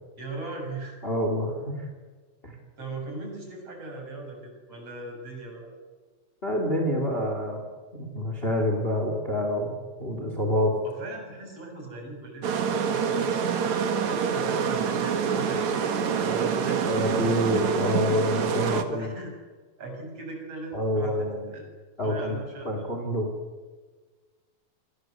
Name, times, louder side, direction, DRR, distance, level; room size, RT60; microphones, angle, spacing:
voice 1, 0.2-1.0 2.8-5.7 10.8-13.7 14.1-15.8 16.2-17.5 18.6-19.3 19.8-21.6 22.0-22.8, right 2 dB, 40° right, 2 dB, 8.4 m, -39 dB
voice 2, 1.0-1.9 2.4-2.6 6.4-7.6 7.9-9.7 10.0-10.8 16.8-19.1 20.7-21.5 22.0-22.4 22.6-23.3, equal, 15° left, 3 dB, 3.5 m, -27 dB
sound 1, 12.4-18.8, right 6 dB, 55° right, 2.8 m, -26 dB
28.0 x 26.0 x 8.1 m, 1.4 s
omnidirectional pair, 4.4 m